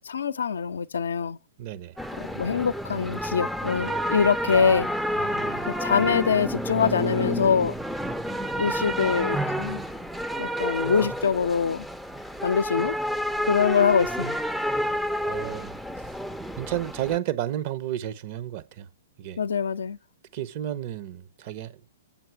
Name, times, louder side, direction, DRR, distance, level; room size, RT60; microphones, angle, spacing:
voice 1, 0.0-1.4 2.2-4.9 5.7-7.7 8.6-9.8 10.4-11.9 12.4-13.0 13.5-14.4 19.4-20.0, left 6 dB, 75° left, 0.5 m, -24 dB
voice 2, 1.6-2.0 5.2-5.7 15.2-15.8 16.6-18.9 19.2-19.4 20.3-21.8, right 12 dB, 45° right, 0.9 m, -32 dB
sound 1, 2.0-17.2, equal, ahead, 0.5 m, -30 dB
sound 2, 4.5-6.6, right 6 dB, 80° right, 2.0 m, -47 dB
7.9 x 7.5 x 4.8 m
hypercardioid pair, 115°, 0 cm